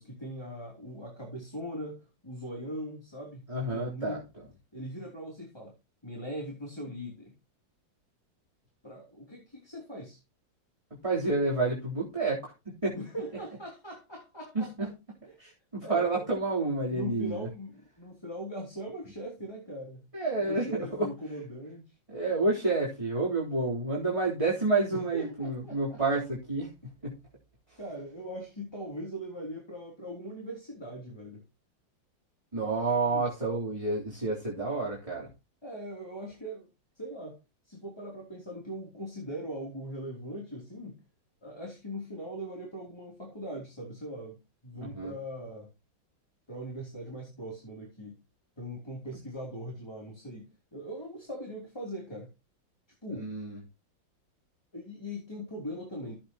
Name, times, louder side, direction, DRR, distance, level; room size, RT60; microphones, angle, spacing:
voice 1, 0.0-4.2 4.7-5.7 6.0-7.3 8.8-10.2 12.9-14.9 15.8-16.2 16.9-20.0 20.4-21.9 24.9-26.0 27.8-31.4 33.0-33.3 35.6-36.7 37.0-37.4 37.6-41.0 41.4-44.4 44.6-45.7 46.5-48.2 48.6-50.5 50.7-52.3 53.0-53.3 54.7-56.2, equal, 15° left, -1 dB, 3.2 m, -40 dB
voice 2, 3.5-4.4 11.0-12.5 12.8-13.0 14.5-14.9 15.4-17.5 20.1-21.1 22.1-27.2 27.7-27.8 32.5-35.3 44.8-45.1 53.1-53.6, right 3 dB, 15° right, -6 dB, 3.8 m, -29 dB
15.0 x 8.5 x 3.0 m, 0.26 s
omnidirectional pair, 2.1 m